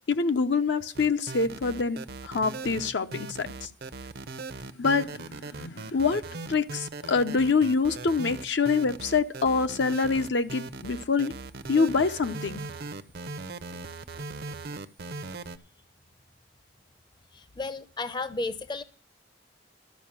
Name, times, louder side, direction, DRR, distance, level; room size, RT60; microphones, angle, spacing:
voice 1, 0.1-2.0 2.2-3.5 4.8-6.2 6.5-11.3 11.7-12.6, left 4 dB, 70° left, 0.7 m, -25 dB
sound 1, 0.9-15.6, right 3 dB, 60° right, 0.7 m, -39 dB
voice 2, 17.3-18.8, left 3 dB, 25° left, 0.6 m, -33 dB
12.5 x 5.3 x 8.7 m
head